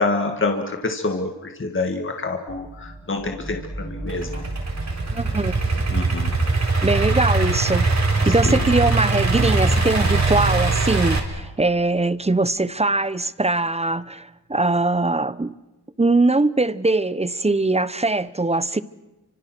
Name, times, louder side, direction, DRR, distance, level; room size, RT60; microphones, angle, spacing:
voice 1, 0.0-4.4 5.9-6.3 8.5-8.6, left 3 dB, 30° left, 1.9 m, -26 dB
sound 1, 2.5-12.3, right 1 dB, 5° left, 4.4 m, -38 dB
Idling / Accelerating revving vroom, 4.1-11.2, right 3 dB, 40° right, 4.4 m, -21 dB
voice 2, 5.1-5.5 6.8-7.9 8.2-15.5 16.0-18.8, right 2 dB, 15° right, 0.8 m, -21 dB
29.5 x 25.5 x 6.1 m
cardioid pair, 90°, 41 cm